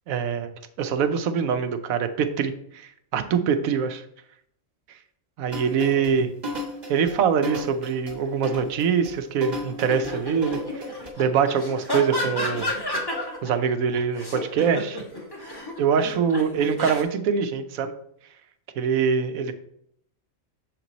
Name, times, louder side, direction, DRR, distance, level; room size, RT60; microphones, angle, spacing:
voice 1, 0.1-0.5 0.8-4.0 5.4-6.3 6.9-10.9 11.2-12.7 13.4-15.0 15.8-17.9 18.8-19.5, right 6 dB, 90° right, 9 dB, 1.1 m, -24 dB
sound 1, 5.5-11.1, left 1 dB, 30° right, 1.5 m, -35 dB
sound 2, 9.8-13.5 13.9-17.0, left 1 dB, 20° left, 1.1 m, -31 dB
6.7 x 4.5 x 4.0 m, 0.71 s
omnidirectional pair, 1.4 m